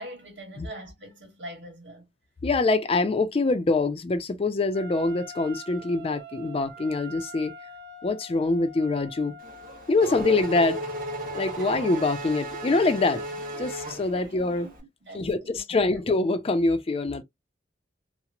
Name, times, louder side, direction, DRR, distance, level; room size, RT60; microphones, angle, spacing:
voice 1, 0.0-2.1 10.0-10.2 11.5-11.7 14.1-14.3 14.6-14.7 15.0-15.6 15.9-16.0, equal, 90° right, 1.4 m, -42 dB
voice 2, 2.4-7.5 8.0-9.4 9.9-10.8 11.3-14.7 15.1-17.2, left 3 dB, 35° left, 0.4 m, -25 dB
Wind instrument woodwind instrument, 4.7-10.0, right 1 dB, 65° right, 0.5 m, -44 dB
Race car auto racing / Accelerating revving vroom, 9.4-14.7, right 1 dB, 50° right, 1.0 m, -35 dB
2.9 x 2.0 x 2.4 m
head